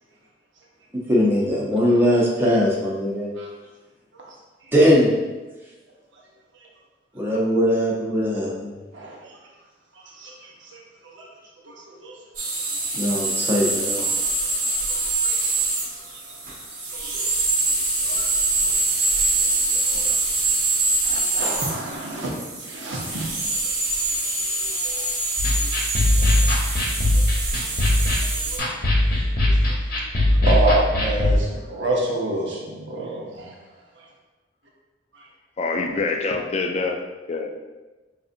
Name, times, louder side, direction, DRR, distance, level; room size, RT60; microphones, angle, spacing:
voice 1, 1.1-3.3 4.7-5.1 7.2-8.7 12.9-14.1, equal, 10° right, -5 dB, 0.6 m, -20 dB
voice 2, 11.6-12.1 14.9-15.5 16.9-17.3 18.0-18.2 19.7-20.1 21.0-22.3 22.6-23.3 24.8-25.0 25.6-26.0 26.2-26.3 27.1-27.2 28.1-28.7 29.6-30.0 30.4-33.5, right 2 dB, 85° right, -3 dB, 0.8 m, -28 dB
sound 1, 12.3-28.6, right 2 dB, 45° right, 0.8 m, -24 dB
sound 2, 25.4-31.4, left 1 dB, 50° left, 0.8 m, -20 dB
voice 3, 35.6-37.0 37.3-37.5, left 3 dB, 35° left, 3 dB, 0.3 m, -25 dB
5.3 x 2.6 x 2.5 m, 1.2 s
head